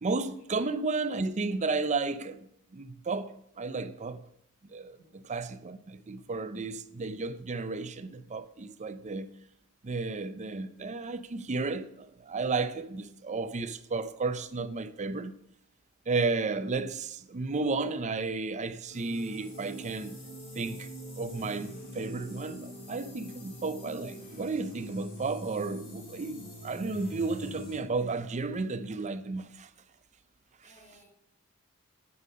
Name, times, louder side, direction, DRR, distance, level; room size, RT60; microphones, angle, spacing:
voice 1, 0.0-2.5 2.7-4.2 4.7-9.3 9.8-15.3 16.1-20.2 20.6-20.9 21.2-29.7, right 3 dB, 35° right, 0.5 m, -33 dB
voice 2, 4.8-5.3 30.6-31.1, equal, 35° left, 4.7 m, -61 dB
sound 1, 18.9-27.8, equal, 50° left, 4.8 m, -44 dB
9.4 x 8.3 x 5.2 m
head